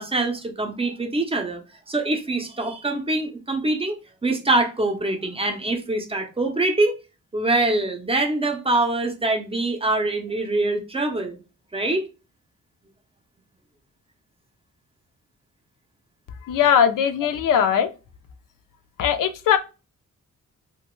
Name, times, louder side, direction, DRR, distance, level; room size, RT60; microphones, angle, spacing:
voice 1, 0.0-1.6 1.9-4.0 4.2-6.9 7.3-11.4 11.7-12.0, right 2 dB, 20° right, 0.5 m, -24 dB
voice 2, 16.4-17.9 19.0-19.6, left 8 dB, 85° left, 0.5 m, -19 dB
3.0 x 2.2 x 3.0 m
wide cardioid pair, 145°, 31 cm